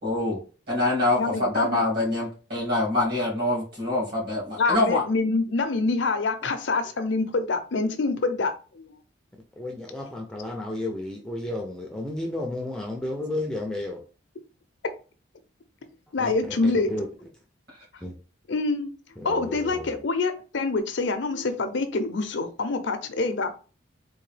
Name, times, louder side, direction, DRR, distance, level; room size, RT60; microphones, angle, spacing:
voice 1, 0.0-0.4 0.7-5.0, left 2 dB, 55° right, -3 dB, 2.1 m, -25 dB
voice 2, 1.2-1.8 4.6-8.9 16.1-16.9 18.5-18.9 19.2-23.5, left 3 dB, 70° left, 8 dB, 0.5 m, -26 dB
voice 3, 9.6-14.0 16.2-17.1 18.0-18.1 19.2-19.8, left 1 dB, 5° left, 1 dB, 0.4 m, -32 dB
3.8 x 2.7 x 3.2 m, 0.36 s
head